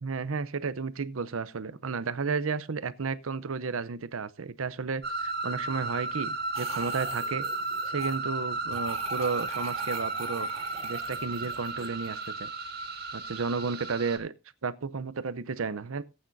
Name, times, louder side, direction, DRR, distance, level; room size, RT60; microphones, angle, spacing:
voice 1, 0.0-7.5 7.9-10.5 10.8-12.5 13.1-14.3 14.6-16.0, right 5 dB, 85° right, 0.7 m, -33 dB
sound 1, 5.0-14.2, right 3 dB, 50° right, 1.6 m, -34 dB
sound 2, 6.5-8.2 8.7-12.2, right 5 dB, 30° right, 2.4 m, -43 dB
18.0 x 8.8 x 2.6 m
head